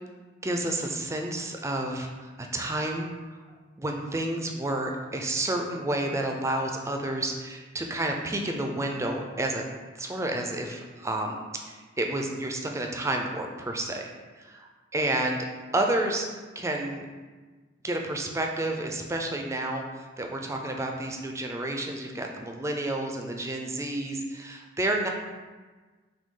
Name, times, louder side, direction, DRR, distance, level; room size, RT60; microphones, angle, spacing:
voice 1, 0.4-3.1 3.8-9.6 10.0-14.0 14.4-15.4 15.7-16.3 16.6-17.1 17.8-25.1, right 1 dB, 15° right, 2 dB, 0.4 m, -30 dB
6.0 x 2.3 x 3.7 m, 1.4 s
head